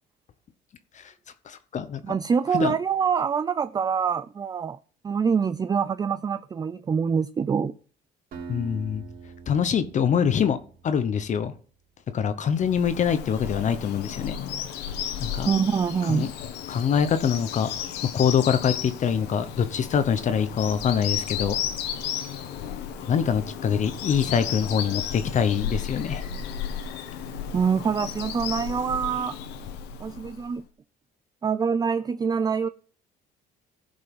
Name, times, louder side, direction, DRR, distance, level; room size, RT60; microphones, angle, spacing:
voice 1, 1.5-2.0 2.5-2.7 8.5-9.0 9.5-10.6 10.8-11.5 12.1-14.4 15.2-15.5 16.0-16.3 16.7-17.7 18.1-21.6 23.1-26.2, left 7 dB, 45° left, 0.9 m, -24 dB
voice 2, 2.0-4.8 5.0-7.8 15.5-16.3 27.5-29.4 30.0-30.6 31.4-32.7, right 6 dB, 25° right, 0.4 m, -25 dB
Acoustic guitar, 8.3-11.3, right 5 dB, 60° right, 3.5 m, -43 dB
Bird vocalization bird call bird song, 12.5-30.5, left 8 dB, 90° left, 1.5 m, -34 dB
15.0 x 5.4 x 5.5 m
cardioid pair, 110°, 17 cm